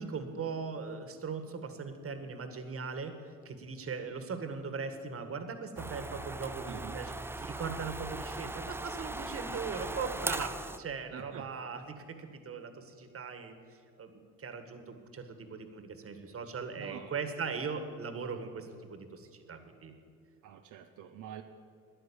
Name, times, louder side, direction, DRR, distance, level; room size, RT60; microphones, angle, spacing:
voice 1, 0.0-13.5 14.0-20.0, right 5 dB, 50° right, 8 dB, 1.7 m, -39 dB
sound 1, 5.8-10.8, right 2 dB, 10° right, 0.4 m, -39 dB
voice 2, 6.7-7.0 11.1-11.5 16.8-17.1 17.7-17.8 18.2-18.4 20.4-21.4, right 10 dB, 85° right, 5 dB, 0.8 m, -47 dB
13.0 x 10.0 x 8.6 m, 2.3 s
cardioid pair, 90°, 30 cm